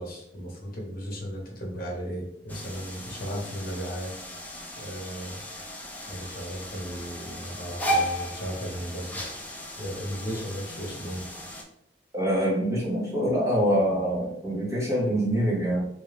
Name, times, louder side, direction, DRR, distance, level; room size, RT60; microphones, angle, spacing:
voice 1, 0.0-4.1 4.8-5.4 6.1-9.2 9.8-11.3, equal, 55° left, -1 dB, 1.1 m, -35 dB
sound 1, 2.5-11.6, equal, 10° left, 0.5 m, -35 dB
voice 2, 12.1-15.9, equal, 15° right, -7 dB, 1.5 m, -25 dB
3.2 x 2.7 x 3.3 m, 0.76 s
head